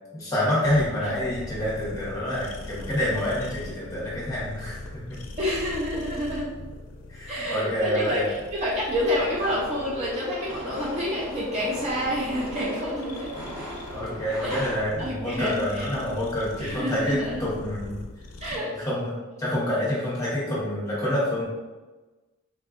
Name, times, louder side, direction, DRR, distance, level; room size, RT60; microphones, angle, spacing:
voice 1, 0.1-5.2 7.1-8.2 13.9-18.0 18.8-21.4, left 1 dB, 15° left, -7 dB, 0.7 m, -27 dB
sound 1, 0.6-18.6, left 2 dB, 85° left, 0.4 m, -42 dB
voice 2, 5.4-6.5 7.3-8.2 8.5-13.3 14.4-14.6 15.0-15.9 16.6-17.4 18.4-18.7, equal, 30° right, -6 dB, 0.4 m, -28 dB
sound 2, 8.9-14.7, equal, 45° right, 1.2 m, -38 dB
3.5 x 2.1 x 2.4 m, 1.2 s
head